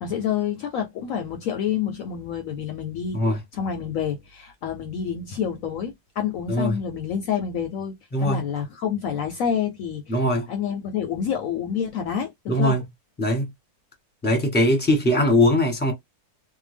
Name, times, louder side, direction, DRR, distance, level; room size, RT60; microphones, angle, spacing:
voice 1, 0.0-7.9 8.2-12.8, left 8 dB, 70° left, 0.9 m, -28 dB
voice 2, 10.1-10.5 12.5-12.8 13.2-13.5 14.2-15.9, left 1 dB, 10° left, 1.0 m, -20 dB
2.7 x 2.2 x 3.2 m
omnidirectional pair, 1.7 m